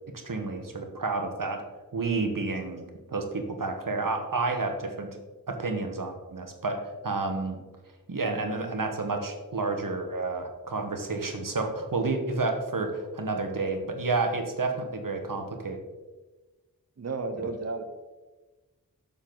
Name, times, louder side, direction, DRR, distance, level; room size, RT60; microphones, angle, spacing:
voice 1, 0.2-1.6 1.9-2.8 3.1-5.2 5.5-7.6 8.1-15.8 17.4-17.5, right 3 dB, 65° right, 4 dB, 1.2 m, -30 dB
voice 2, 17.0-17.8, right 3 dB, 45° right, 6 dB, 0.8 m, -33 dB
6.9 x 6.7 x 3.8 m, 1.2 s
wide cardioid pair, 45°, 35 cm